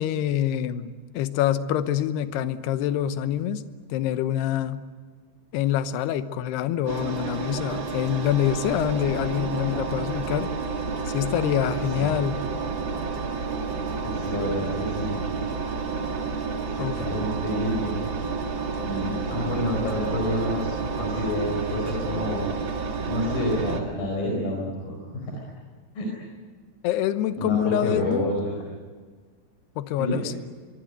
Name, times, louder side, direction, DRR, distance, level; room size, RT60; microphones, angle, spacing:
voice 1, 0.0-3.6 3.9-4.8 5.5-10.5 11.1-12.4 16.8-17.0 26.8-28.3 29.8-30.4, left 11 dB, 75° left, 11 dB, 2.8 m, -26 dB
Engine, 6.9-23.8, right 4 dB, 50° right, 1.5 m, -30 dB
voice 2, 11.8-12.2 14.0-15.2 16.8-18.1 18.8-20.7 21.0-22.5 23.1-25.3 26.0-26.1 27.4-28.6 30.0-30.2, left 1 dB, 50° left, -1 dB, 6.1 m, -28 dB
24.0 x 24.0 x 9.2 m, 1.5 s
omnidirectional pair, 5.3 m